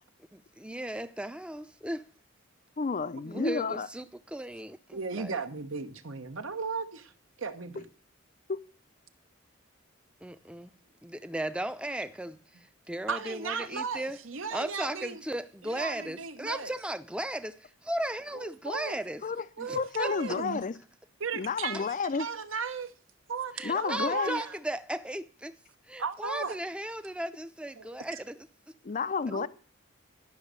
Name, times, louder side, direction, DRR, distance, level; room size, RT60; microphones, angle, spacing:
voice 1, 0.3-2.1 3.2-5.4 10.2-10.7 11.0-14.2 14.5-19.2 19.6-20.4 21.7-21.8 23.5-25.6 25.9-28.5, right 1 dB, 5° right, 0.6 m, -36 dB
voice 2, 2.8-3.9 8.5-8.6 19.2-19.5 19.7-20.7 21.3-22.3 23.6-24.4 28.8-29.5, left 4 dB, 40° left, 0.5 m, -30 dB
voice 3, 4.9-7.1 7.4-7.9 13.1-15.2 15.6-16.7 18.3-19.0 19.6-20.6 21.2-21.9 22.2-22.9 23.3-24.5 26.0-26.6 27.8-27.9 29.3-29.5, right 5 dB, 75° right, 1.1 m, -36 dB
12.0 x 6.3 x 8.1 m
head